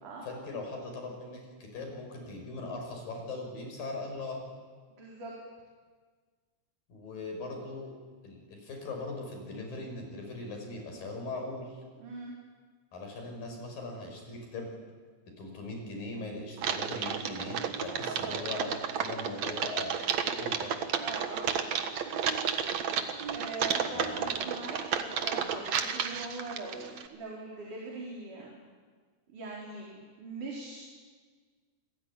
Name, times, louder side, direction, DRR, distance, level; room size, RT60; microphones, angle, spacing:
voice 1, 0.2-4.4 6.9-7.9 8.2-11.8 12.9-14.7 15.4-18.7 19.0-19.9 20.3-20.8 23.9-24.2, left 2 dB, 45° left, 2 dB, 7.1 m, -40 dB
voice 2, 4.9-5.3 12.0-12.3 18.0-18.5 21.0-21.8 23.3-28.6 29.3-30.8, right 3 dB, 40° right, -3 dB, 5.4 m, -41 dB
Typing, 16.6-27.1, right 7 dB, 70° right, 1.6 m, -32 dB
29.0 x 20.5 x 10.0 m, 1.5 s
omnidirectional pair, 5.6 m